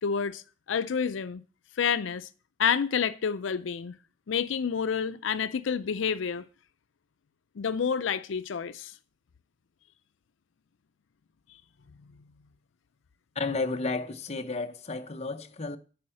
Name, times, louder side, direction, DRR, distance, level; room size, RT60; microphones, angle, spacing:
voice 1, 0.0-1.4 1.8-2.3 2.6-4.0 4.3-6.4 7.6-8.9, left 7 dB, 75° left, 0.5 m, -29 dB
voice 2, 13.3-15.8, left 3 dB, 35° left, 0.7 m, -32 dB
8.6 x 5.5 x 7.5 m
head